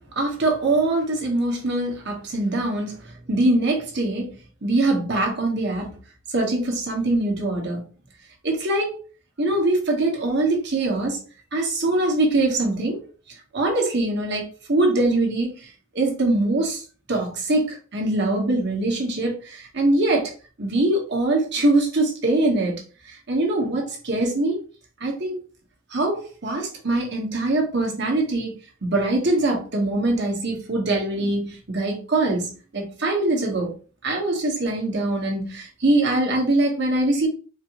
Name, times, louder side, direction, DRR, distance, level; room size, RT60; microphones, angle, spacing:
voice 1, 0.1-4.3 4.6-6.0 6.3-7.8 8.4-9.0 9.4-11.2 11.5-13.0 13.5-20.3 20.6-24.6 25.0-25.4 25.9-28.5 28.8-33.7 34.0-37.3, right 2 dB, 60° right, 1.3 m, -23 dB
4.3 x 2.7 x 3.0 m
head